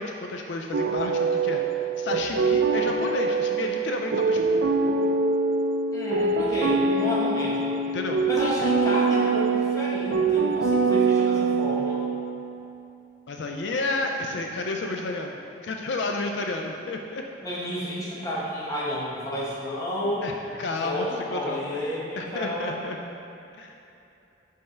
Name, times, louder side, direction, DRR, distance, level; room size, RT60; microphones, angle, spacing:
voice 1, 0.0-4.6 7.9-8.2 8.6-8.7 13.3-17.2 20.2-23.0 23.6-23.8, left 2 dB, 75° left, 2 dB, 0.4 m, -31 dB
sound 1, 0.7-12.4, right 4 dB, 85° right, 0.4 m, -24 dB
voice 2, 5.9-7.7 8.3-12.0 17.4-20.2 20.8-22.7, equal, 20° left, -7 dB, 1.1 m, -31 dB
5.4 x 3.4 x 5.6 m, 2.8 s
head